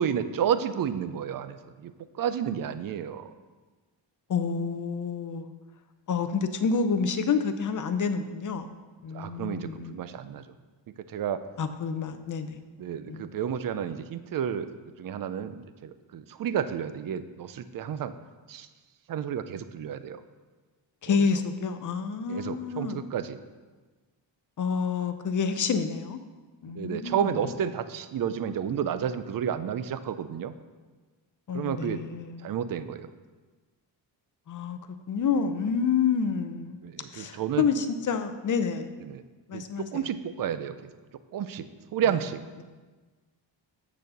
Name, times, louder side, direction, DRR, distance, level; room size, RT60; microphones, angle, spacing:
voice 1, 0.0-1.9 2.2-3.3 9.1-10.4 11.1-11.4 12.8-14.7 15.0-18.1 18.5-18.7 19.1-20.2 21.1-21.2 22.3-23.4 26.7-30.5 31.5-32.0 32.4-33.1 36.8-37.7 39.1-39.2 39.5-39.6 39.9-40.9 41.3-41.7 41.9-42.4, right 8 dB, 50° right, 12 dB, 0.5 m, -31 dB
voice 2, 4.3-5.5 6.1-8.7 9.0-10.1 11.6-12.6 13.1-13.3 21.0-23.0 24.6-26.2 26.6-27.3 31.5-32.5 34.5-34.8 35.1-36.8 37.1-38.9 39.5-40.0, left 6 dB, 40° left, 9 dB, 0.6 m, -28 dB
9.1 x 4.2 x 6.8 m, 1.3 s
wide cardioid pair, 165°, 46 cm